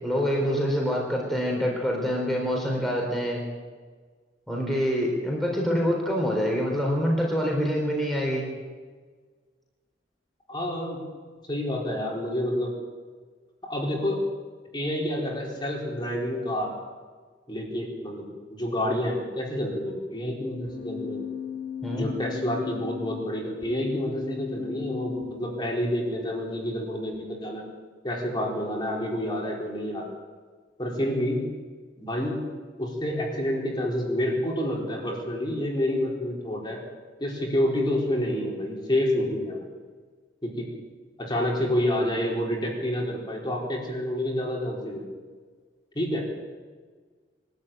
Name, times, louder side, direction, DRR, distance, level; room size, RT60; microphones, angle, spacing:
voice 1, 0.0-3.4 4.5-8.4 21.8-22.1, equal, ahead, -1 dB, 3.8 m, -26 dB
voice 2, 10.5-11.0 11.5-12.7 13.7-14.2 14.7-16.7 17.5-21.2 21.9-27.6 28.0-30.1 30.8-31.4 32.0-32.4 32.8-36.8 37.2-39.7 40.4-40.7 41.2-45.0 45.9-46.3, left 1 dB, 25° left, -2 dB, 4.5 m, -28 dB
Keyboard (musical), 20.7-26.6, left 7 dB, 80° left, 3.7 m, -37 dB
23.5 x 13.0 x 9.0 m, 1.5 s
head